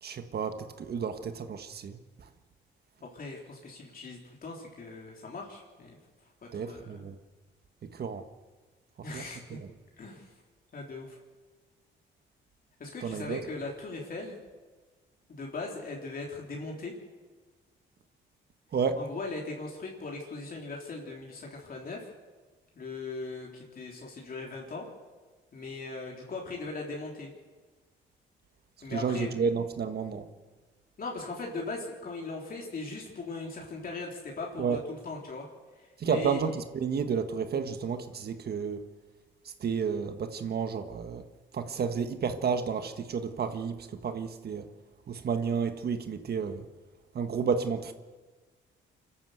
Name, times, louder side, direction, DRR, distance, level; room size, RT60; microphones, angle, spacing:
voice 1, 0.0-2.3 6.5-7.2 7.9-8.2 9.1-9.2 9.5-9.7 13.0-13.4 18.7-19.0 28.9-30.3 34.6-34.8 36.0-38.8 39.6-41.2 41.5-44.7 45.1-46.7 47.1-47.9, right 6 dB, 55° right, 8 dB, 1.6 m, -31 dB
voice 2, 3.0-6.0 6.4-7.1 9.0-9.6 10.0-10.3 10.7-11.2 12.8-14.4 15.3-17.0 19.0-22.1 22.8-24.9 25.5-27.3 28.8-29.3 31.0-35.5 35.8-36.4, left 3 dB, 45° left, -1 dB, 3.7 m, -39 dB
24.5 x 13.0 x 8.1 m, 1.3 s
cardioid pair, 90°, 20 cm